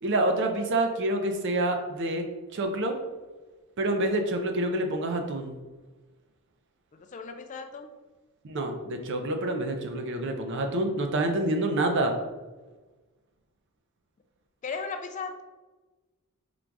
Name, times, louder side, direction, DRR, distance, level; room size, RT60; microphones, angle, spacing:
voice 1, 0.0-2.2 2.5-2.9 3.8-5.6 8.4-12.1, right 1 dB, 55° right, 5 dB, 0.5 m, -27 dB
voice 2, 6.9-7.9 14.6-15.4, left 4 dB, 35° left, 6 dB, 0.3 m, -36 dB
3.8 x 2.3 x 4.6 m, 1.2 s
head